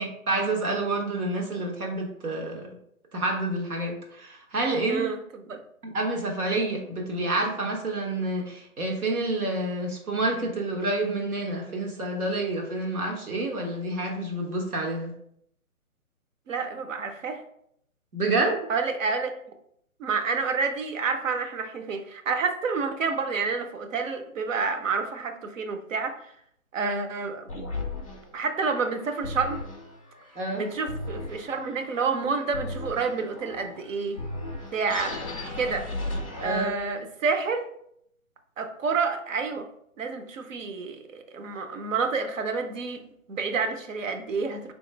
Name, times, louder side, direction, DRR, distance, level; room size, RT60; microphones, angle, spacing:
voice 1, 0.0-2.7 3.1-5.0 5.8-15.1 18.1-18.7 30.4-30.6 36.4-36.7, right 2 dB, 85° right, 1 dB, 1.2 m, -28 dB
voice 2, 4.9-5.6 16.5-17.4 18.7-19.3 20.0-26.1 26.7-27.8 28.3-29.6 30.5-34.2 34.7-35.2 35.6-35.9 36.4-37.7 38.6-39.7 40.0-44.8, right 4 dB, 65° right, 6 dB, 0.7 m, -29 dB
sound 1, 27.5-36.9, left 2 dB, 25° left, 0.4 m, -37 dB
3.7 x 3.1 x 3.2 m, 0.72 s
hypercardioid pair, 155°, 43 cm